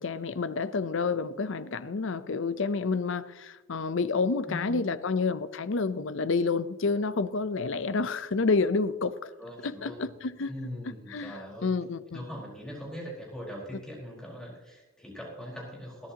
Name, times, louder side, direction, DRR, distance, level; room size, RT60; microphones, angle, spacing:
voice 1, 0.0-9.3 9.6-10.5 11.1-12.2, left 4 dB, 65° left, 14 dB, 0.6 m, -29 dB
voice 2, 4.5-4.8 9.4-10.1 10.5-11.7 12.1-16.1, equal, 5° left, -4 dB, 4.5 m, -41 dB
20.5 x 11.0 x 2.9 m, 1.2 s
head